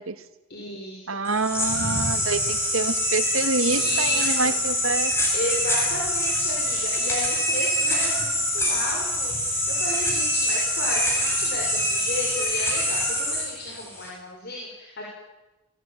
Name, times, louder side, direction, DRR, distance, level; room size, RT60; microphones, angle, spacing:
voice 1, 0.5-1.3 3.8-4.6 5.3-15.0, left 1 dB, 50° left, -2 dB, 6.7 m, -34 dB
voice 2, 1.1-5.1, right 3 dB, 70° right, 9 dB, 2.0 m, -27 dB
sound 1, 1.3-14.1, left 1 dB, 10° left, 8.0 m, -25 dB
29.0 x 22.0 x 9.4 m, 1.0 s
head